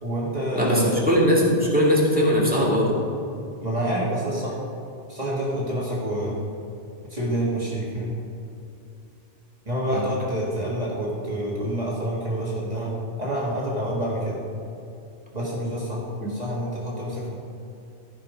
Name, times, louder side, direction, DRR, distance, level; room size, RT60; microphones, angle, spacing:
voice 1, 0.0-1.0 3.6-4.6 5.1-6.4 7.1-8.1 9.7-14.4 15.3-17.3, right 1 dB, 35° right, -6 dB, 1.8 m, -27 dB
voice 2, 0.5-3.0 9.9-10.1, equal, 5° right, -5 dB, 2.2 m, -20 dB
15.0 x 5.2 x 5.2 m, 2.7 s
omnidirectional pair, 1.2 m